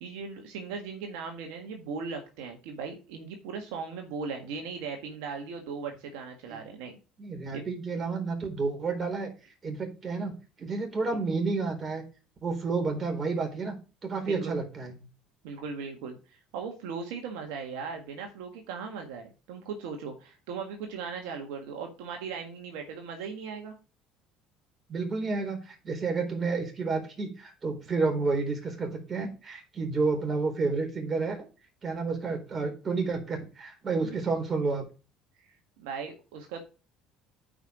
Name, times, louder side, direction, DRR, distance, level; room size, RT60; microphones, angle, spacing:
voice 1, 0.0-6.9 7.5-7.6 14.3-14.6 15.4-23.7 34.0-34.2 35.4-35.5 35.8-36.6, right 5 dB, 75° right, 3 dB, 1.6 m, -38 dB
voice 2, 7.2-9.3 9.6-10.3 10.6-12.0 12.4-13.7 14.0-14.9 24.9-31.4 31.8-34.8, right 4 dB, 35° right, 3 dB, 3.9 m, -30 dB
9.0 x 5.3 x 4.9 m, 0.33 s
hypercardioid pair, 75°, 0 cm